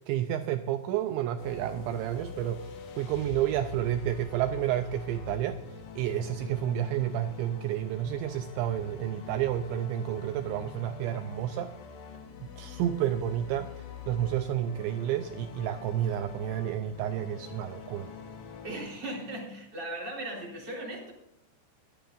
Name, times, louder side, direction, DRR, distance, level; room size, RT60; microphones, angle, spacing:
voice 1, 0.0-5.6 6.0-11.7 12.6-18.1, right 11 dB, 85° right, 8 dB, 2.6 m, -30 dB
sound 1, 1.4-18.8, left 7 dB, 80° left, 1.9 m, -45 dB
voice 2, 18.6-21.1, right 1 dB, 25° right, -2 dB, 3.5 m, -37 dB
22.0 x 9.0 x 2.5 m, 0.86 s
omnidirectional pair, 5.7 m